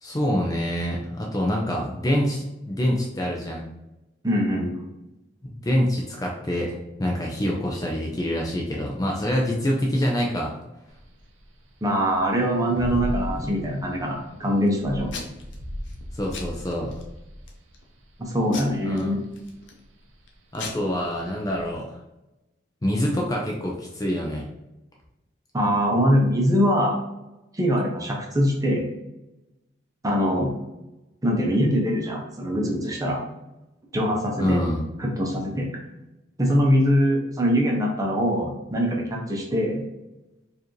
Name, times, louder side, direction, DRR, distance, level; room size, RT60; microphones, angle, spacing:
voice 1, 0.0-3.6 5.5-10.5 16.1-16.9 18.8-19.1 20.5-22.0 22.8-24.5 34.4-34.8, equal, 20° left, -1 dB, 0.5 m, -26 dB
voice 2, 4.2-4.7 11.8-15.1 18.2-19.2 25.5-27.0 27.5-28.9 30.0-30.5 31.2-33.2 33.9-34.6 35.0-35.7 36.4-39.8, equal, 20° right, -1 dB, 0.7 m, -23 dB
sound 1, 10.9-21.7, equal, 85° right, 0.6 m, -37 dB
Packing tape duct tape / Tearing, 12.3-13.7 14.2-14.7 15.1-15.5 15.9-16.0 16.3-17.0 17.5-17.8 18.5-19.8 20.3-20.4 20.5-20.7, left 4 dB, 65° left, 0.7 m, -39 dB
4.5 x 2.6 x 3.1 m, 0.95 s
head